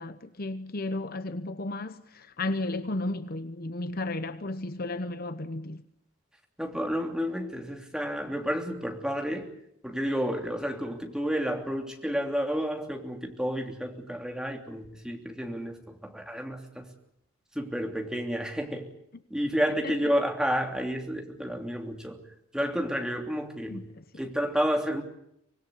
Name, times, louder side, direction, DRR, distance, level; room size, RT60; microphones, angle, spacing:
voice 1, 0.0-5.8 19.8-20.0 23.7-24.2, left 2 dB, 45° left, 1.0 m, -34 dB
voice 2, 6.6-9.5 9.8-16.9 17.5-18.9 19.3-22.2 22.5-23.9 24.2-25.0, equal, 5° right, 3.1 m, -30 dB
25.0 x 20.0 x 8.4 m
head